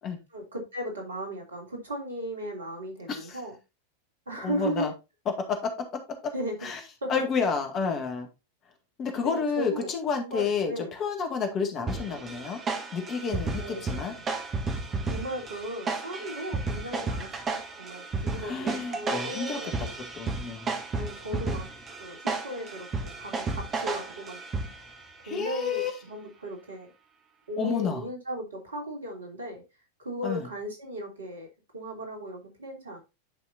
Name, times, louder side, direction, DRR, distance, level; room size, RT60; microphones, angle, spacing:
voice 1, 0.3-3.5 4.3-4.9 6.3-6.6 7.0-7.1 9.2-9.9 10.2-10.9 13.6-14.2 15.0-19.7 20.9-21.7 22.0-22.2 22.4-24.4 25.3-26.9 27.5-29.6 30.0-31.5 31.7-33.0, equal, 70° right, 3.0 m, -36 dB
voice 2, 3.1-3.4 4.4-4.9 5.5-5.7 6.1-6.3 6.6-6.8 7.1-8.3 9.0-12.6 12.9-14.1 18.4-20.8 25.2-25.9 27.6-28.0 30.2-30.5, left 5 dB, 30° left, 2.0 m, -30 dB
sound 1, 11.9-25.0, right 3 dB, 25° right, 1.6 m, -33 dB
10.5 x 5.6 x 2.7 m
figure-of-eight pair, 90°, 0 cm